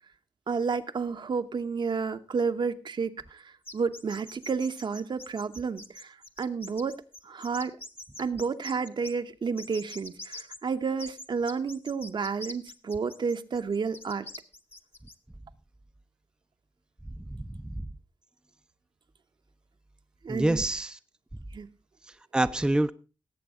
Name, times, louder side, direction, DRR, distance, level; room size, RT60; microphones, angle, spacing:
voice 1, 0.5-7.8 8.2-14.3 20.2-20.6 21.5-21.7, right 5 dB, 65° right, 8 dB, 0.9 m, -31 dB
sound 1, 3.7-9.1 9.6-10.6 11.0-15.1, left 2 dB, 25° left, 1.0 m, -44 dB
voice 2, 17.3-17.8 20.3-21.0 22.3-22.9, right 1 dB, 10° right, 10 dB, 0.5 m, -26 dB
18.5 x 8.0 x 3.6 m, 0.32 s
wide cardioid pair, 130°, 9 cm